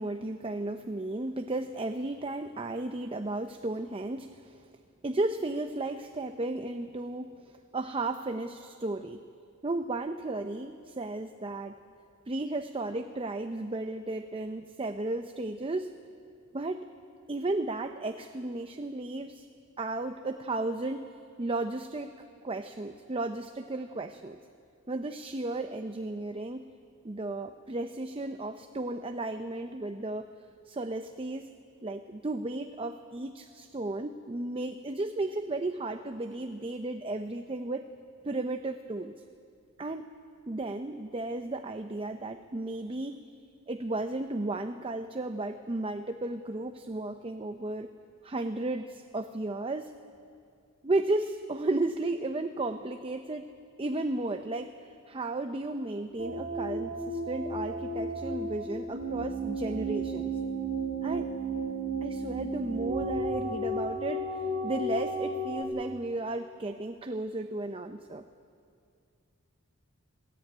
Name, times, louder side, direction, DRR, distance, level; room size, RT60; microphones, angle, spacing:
voice 1, 0.0-4.6 5.0-9.2 9.6-11.8 12.3-15.9 16.5-16.9 17.3-19.5 19.8-21.1 21.4-24.4 24.9-26.7 27.0-30.3 30.7-31.6 31.8-37.9 38.2-39.1 39.8-40.1 40.5-43.2 43.7-47.9 48.2-49.9 50.8-53.5 53.8-54.7 55.1-60.4 61.0-61.3 62.0-64.2 64.6-68.2, right 2 dB, 25° right, 7 dB, 0.6 m, -34 dB
sound 1, 56.2-65.6, right 2 dB, 50° right, 2.7 m, -33 dB
21.0 x 16.0 x 9.1 m, 2.3 s
head